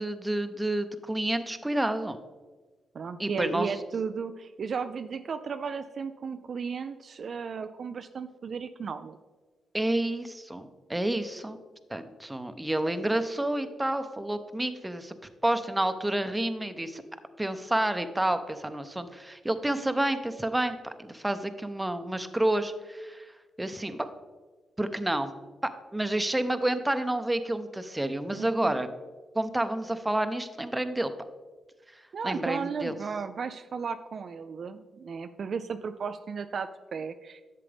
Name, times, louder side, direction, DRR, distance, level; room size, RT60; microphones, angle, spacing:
voice 1, 0.0-2.2 3.2-3.7 9.7-11.6 11.9-15.1 15.4-17.0 17.4-23.3 23.6-24.1 24.8-25.3 25.9-28.9 29.3-31.1 32.2-33.0, right 1 dB, 15° right, 9 dB, 0.8 m, -29 dB
voice 2, 2.9-9.2 28.3-28.8 32.1-37.4, right 5 dB, 60° right, 9 dB, 0.4 m, -35 dB
11.0 x 7.5 x 3.4 m, 1.3 s
supercardioid pair, 60°, 0 cm